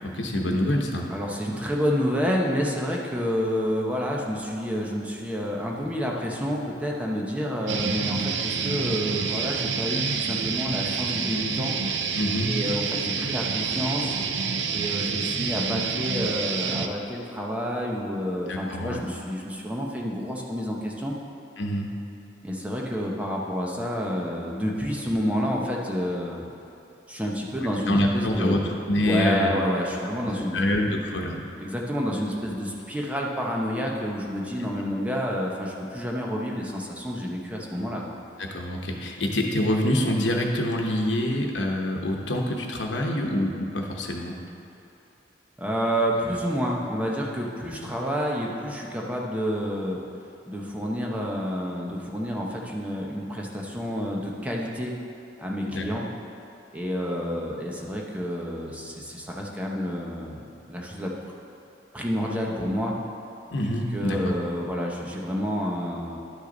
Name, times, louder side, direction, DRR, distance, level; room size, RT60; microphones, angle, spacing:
voice 1, 0.0-1.1 12.1-12.6 18.5-19.0 21.6-21.9 27.9-28.6 28.9-29.5 30.5-31.4 38.4-44.4 55.7-55.9 63.5-64.3, left 1 dB, 85° left, 1 dB, 1.0 m, -26 dB
voice 2, 1.1-11.8 12.5-14.2 14.7-21.1 22.4-26.4 27.1-28.6 29.0-30.7 30.9-31.0 31.5-38.2 45.6-50.0 50.4-54.9 55.4-56.1 56.7-60.4 60.7-61.1 61.9-62.9 63.9-66.2, equal, 10° right, -2 dB, 0.9 m, -29 dB
sound 1, 7.7-16.9, right 5 dB, 75° right, 0.5 m, -28 dB
11.5 x 6.4 x 3.9 m, 2.7 s
head